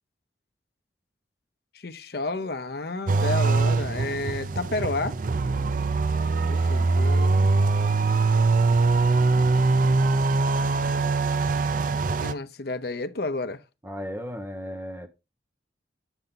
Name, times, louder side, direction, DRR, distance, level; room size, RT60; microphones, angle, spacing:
voice 1, 1.7-5.2 6.5-7.3 12.2-13.6, left 3 dB, 55° left, 0.7 m, -31 dB
sound 1, 3.1-12.3, right 3 dB, 45° right, 0.4 m, -22 dB
voice 2, 13.8-15.1, equal, 10° right, 1.3 m, -35 dB
9.0 x 5.5 x 3.9 m
head